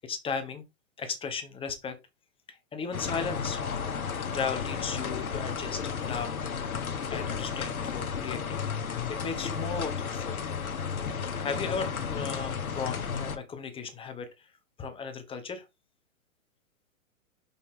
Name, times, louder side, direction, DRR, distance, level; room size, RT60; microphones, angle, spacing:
voice 1, 0.0-0.6 1.0-2.0 2.5-3.6 4.3-6.3 6.8-8.6 9.1-10.4 11.4-14.5 14.8-15.7, left 5 dB, 15° left, 1.1 m, -36 dB
sound 1, 2.9-13.4, left 6 dB, 90° left, 1.3 m, -33 dB
6.3 x 5.5 x 3.7 m
hypercardioid pair, 135°, 41 cm